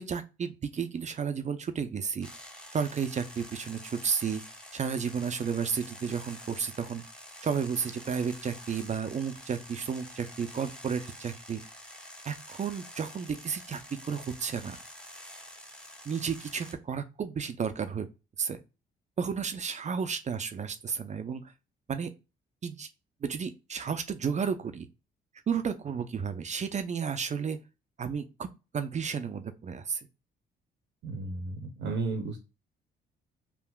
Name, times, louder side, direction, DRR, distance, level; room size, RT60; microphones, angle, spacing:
voice 1, 0.0-2.3 2.7-4.4 4.7-7.0 7.4-11.6 12.3-14.8 16.1-18.1 18.4-18.6 19.2-21.4 21.9-22.1 22.6-22.9 23.2-24.9 25.5-27.6 28.0-28.5 28.7-30.0, right 6 dB, 35° right, 9 dB, 0.4 m, -32 dB
sound 1, 2.2-16.7, equal, 5° left, 0.7 m, -48 dB
voice 2, 31.0-32.4, right 3 dB, 70° right, 5 dB, 0.7 m, -33 dB
3.5 x 2.5 x 2.2 m, 0.28 s
supercardioid pair, 70°, 21 cm